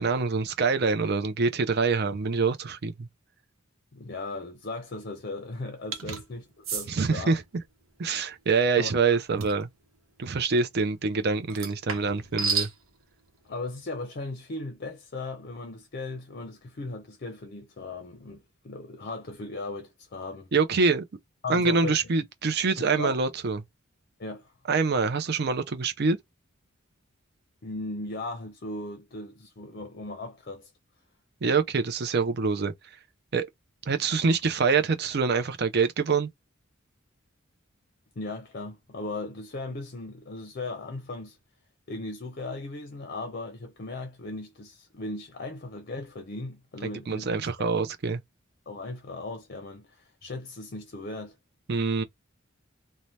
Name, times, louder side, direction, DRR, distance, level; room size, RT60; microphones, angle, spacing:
voice 1, 0.0-3.1 6.9-7.4 8.0-9.7 10.2-12.7 20.5-21.0 21.5-23.6 24.7-26.2 31.4-32.7 33.3-33.5 33.9-36.3 47.1-48.2 51.7-52.0, right 4 dB, 50° right, 0.5 m, -25 dB
voice 2, 3.9-7.4 8.8-8.9 13.5-20.5 21.4-21.9 22.8-23.2 24.2-24.5 27.6-30.7 38.2-41.4 41.9-47.3 47.6-47.7 48.7-51.4, left 2 dB, 45° left, 0.5 m, -37 dB
sound 1, 5.9-6.2 6.6-6.9 9.4-9.6 11.5-12.7, right 5 dB, 75° right, 0.9 m, -30 dB
2.7 x 2.1 x 3.1 m
head